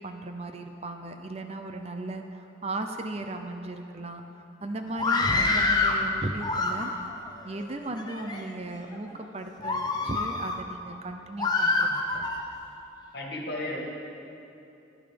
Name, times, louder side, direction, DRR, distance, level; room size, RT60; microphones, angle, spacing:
voice 1, 0.0-4.2 4.6-6.9 7.4-11.9 12.1-12.2, right 2 dB, 35° right, 6 dB, 0.6 m, -36 dB
Screaming, 4.9-6.0 6.4-7.2 7.8-8.4 8.9-9.1 9.6-10.6 11.4-12.4, left 3 dB, 20° left, 0.8 m, -26 dB
voice 2, 13.1-13.8, left 1 dB, 55° left, -2 dB, 2.1 m, -33 dB
11.5 x 10.5 x 5.2 m, 2.8 s
head